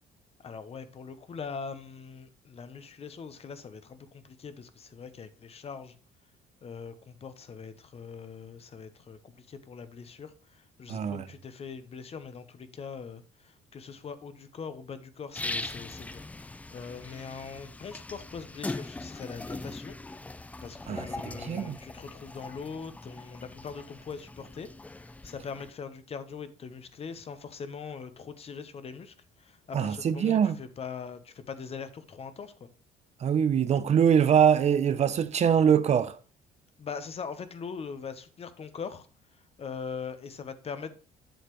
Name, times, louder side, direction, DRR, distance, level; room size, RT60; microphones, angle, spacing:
voice 1, 0.4-5.9 6.6-20.0 20.6-24.7 25.0-32.7 36.8-39.1 39.6-41.0, left 6 dB, 35° left, 0.9 m, -42 dB
voice 2, 10.9-11.2 20.9-21.1 21.4-21.8 29.7-30.6 33.2-36.2, right 8 dB, 40° right, 0.6 m, -23 dB
sound 1, 15.3-25.7, left 2 dB, 10° left, 0.3 m, -41 dB
7.9 x 6.6 x 3.1 m
cardioid pair, 105°, 17 cm